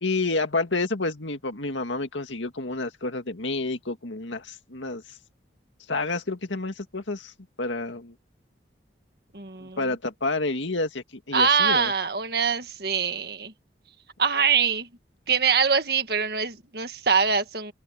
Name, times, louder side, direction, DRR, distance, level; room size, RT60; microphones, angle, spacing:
voice 1, 0.0-5.0 5.9-7.3 7.6-8.1 9.6-11.9, left 3 dB, 90° left, 2.1 m, -29 dB
voice 2, 9.3-9.8 11.3-13.5 14.2-14.9 15.3-17.7, right 6 dB, 55° right, 1.8 m, -23 dB
open air
head